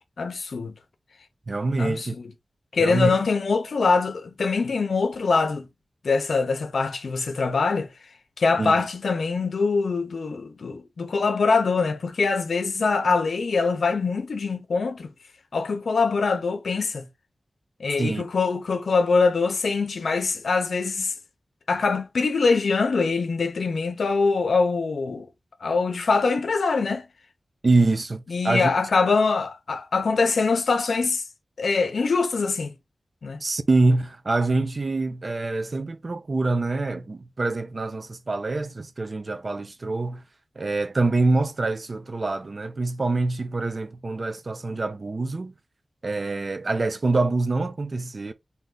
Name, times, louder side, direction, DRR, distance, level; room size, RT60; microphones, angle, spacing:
voice 1, 0.2-0.7 1.8-2.1 2.7-5.7 6.0-7.9 8.4-15.1 15.5-17.1 17.8-21.1 21.7-25.3 25.6-27.0 28.3-31.2 31.6-32.7 33.2-33.4, left 4 dB, 85° left, 0.6 m, -23 dB
voice 2, 1.5-2.2 2.8-3.1 8.6-8.9 18.0-18.2 27.6-28.7 33.4-40.2 40.6-45.5 46.0-48.3, right 3 dB, 50° right, 0.5 m, -25 dB
3.5 x 2.8 x 3.8 m
wide cardioid pair, 75°, 0 cm